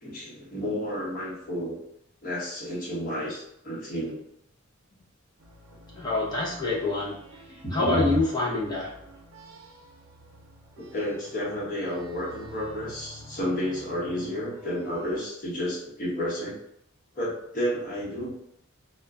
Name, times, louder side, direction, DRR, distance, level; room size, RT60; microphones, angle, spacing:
voice 1, 0.0-1.8 2.2-4.2 7.5-8.1 10.8-16.6 17.1-18.3, equal, 45° left, -6 dB, 1.1 m, -31 dB
sound 1, 5.4-15.2, equal, 85° right, 0.5 m, -49 dB
voice 2, 5.9-7.4 7.7-8.9, left 2 dB, 20° left, -5 dB, 0.6 m, -26 dB
2.2 x 2.1 x 3.5 m, 0.75 s
head